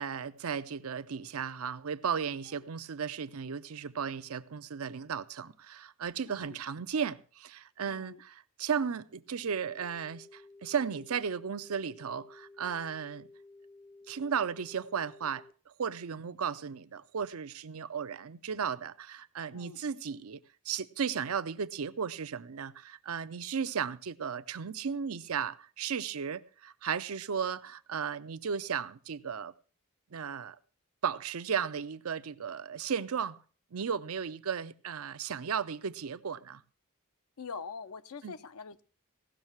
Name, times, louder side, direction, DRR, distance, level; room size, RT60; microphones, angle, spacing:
voice 1, 0.0-13.3 14.1-15.4 15.8-20.4 20.7-29.5 30.1-30.6 31.0-33.4 33.7-36.6 38.2-38.3, right 7 dB, 80° right, 0.6 m, -35 dB
voice 2, 6.2-6.6 7.8-8.2 19.5-19.8 37.4-38.8, left 5 dB, 80° left, 0.6 m, -44 dB
sound 1, 9.4-15.5, left 2 dB, 40° left, 0.6 m, -54 dB
16.5 x 6.5 x 5.9 m
head